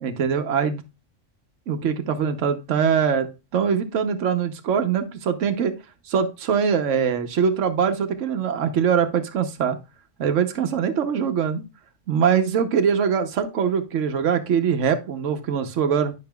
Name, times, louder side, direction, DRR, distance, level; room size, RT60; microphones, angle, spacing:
voice 1, 0.0-0.8 1.7-5.7 6.1-9.8 10.2-11.6 12.1-16.1, right 7 dB, 75° right, 6 dB, 1.2 m, -22 dB
10.5 x 5.8 x 2.3 m, 0.27 s
omnidirectional pair, 1.3 m